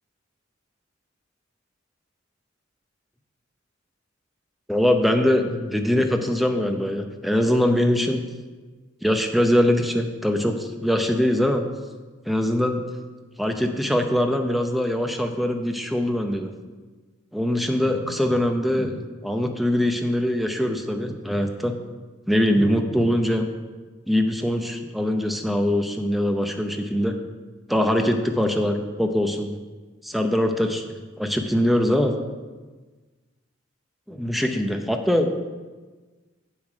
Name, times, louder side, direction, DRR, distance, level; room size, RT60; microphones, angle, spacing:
voice 1, 4.7-8.2 9.0-11.6 12.3-12.8 13.4-16.5 17.3-19.0 19.2-21.7 22.3-23.5 24.1-27.1 27.7-29.5 30.0-32.1 34.1-35.4, left 1 dB, ahead, 4 dB, 0.7 m, -22 dB
7.9 x 7.3 x 5.0 m, 1.3 s
head